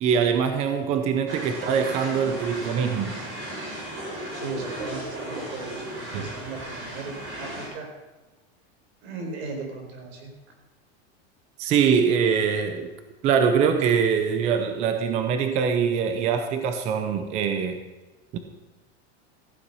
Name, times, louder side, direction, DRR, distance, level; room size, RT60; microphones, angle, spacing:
voice 1, 0.0-3.2 6.1-6.2 11.6-12.9 13.2-17.8 18.3-18.4, right 7 dB, 20° right, 8 dB, 0.6 m, -23 dB
sound 1, 1.3-7.7, right 1 dB, 40° right, 5.2 m, -36 dB
voice 2, 4.3-7.9 9.0-10.3, right 3 dB, 75° right, 2 dB, 4.6 m, -37 dB
15.0 x 9.3 x 5.5 m, 1.1 s
supercardioid pair, 180°, 33 cm